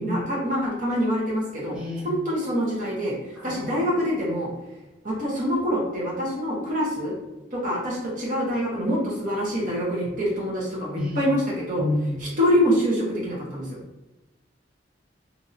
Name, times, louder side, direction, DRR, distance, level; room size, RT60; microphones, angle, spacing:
voice 1, 0.0-1.8 2.0-3.1 3.4-4.5 5.0-7.1 7.5-11.8 12.2-13.7, equal, 45° right, -5 dB, 1.1 m, -25 dB
voice 2, 1.7-2.1 3.4-3.8 10.9-11.2 11.8-12.2, left 1 dB, 5° right, -7 dB, 0.4 m, -29 dB
2.8 x 2.6 x 2.6 m, 1.1 s
head